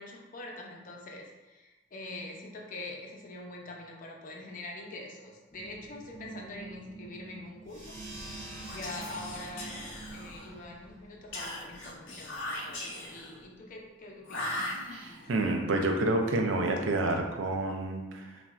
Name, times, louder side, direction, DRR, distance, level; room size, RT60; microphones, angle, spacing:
voice 1, 0.0-8.0 8.7-14.6, left 2 dB, 45° left, -1 dB, 0.5 m, -44 dB
sound 1, 5.5-10.6, right 4 dB, 25° right, 1.1 m, -49 dB
sound 2, 7.6-12.7, right 1 dB, 45° right, 1.1 m, -48 dB
Whispering, 8.6-10.6 11.3-13.4 14.2-15.3, left 1 dB, 90° left, 0.6 m, -39 dB
voice 2, 14.9-18.4, right 2 dB, 80° right, 3 dB, 0.4 m, -29 dB
3.1 x 2.5 x 2.3 m, 1.1 s
head